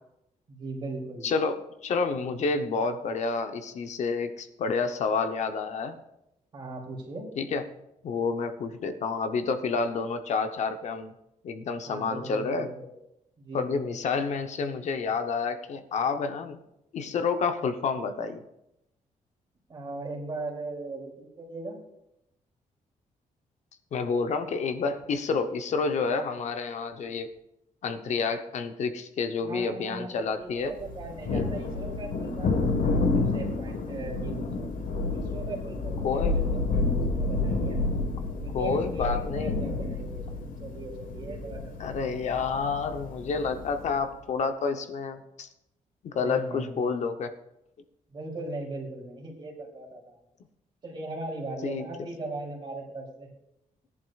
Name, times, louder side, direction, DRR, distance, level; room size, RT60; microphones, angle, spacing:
voice 1, 0.5-1.3 6.5-7.3 11.9-12.9 13.4-14.0 19.7-21.8 29.4-34.7 35.1-37.8 38.4-41.9 46.1-46.9 48.1-50.2 50.8-53.3, right 2 dB, 35° right, -1 dB, 2.9 m, -39 dB
voice 2, 1.2-6.0 7.4-7.7 8.0-11.1 11.4-12.7 13.5-16.6 16.9-18.4 23.9-27.3 27.8-30.7 31.3-31.5 36.0-36.4 38.5-39.5 41.8-45.5 46.0-47.3 51.6-51.8, left 4 dB, 60° left, 7 dB, 0.8 m, -29 dB
Thunder, 30.8-44.0, left 3 dB, 85° left, 1.4 m, -29 dB
17.5 x 10.5 x 2.4 m, 0.84 s
wide cardioid pair, 175°, 14 cm